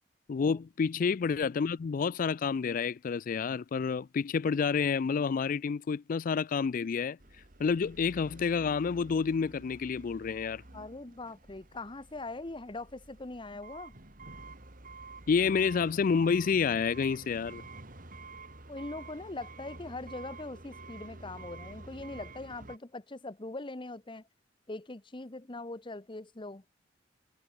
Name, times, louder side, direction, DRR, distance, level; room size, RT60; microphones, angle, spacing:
voice 1, 0.3-7.2 7.6-10.6 15.3-17.6, left 5 dB, 45° left, 0.3 m, -29 dB
sound 1, 7.2-22.8, right 3 dB, 45° right, 2.8 m, -49 dB
voice 2, 10.7-13.9 18.7-24.2 24.7-26.6, left 2 dB, 25° left, 1.0 m, -42 dB
head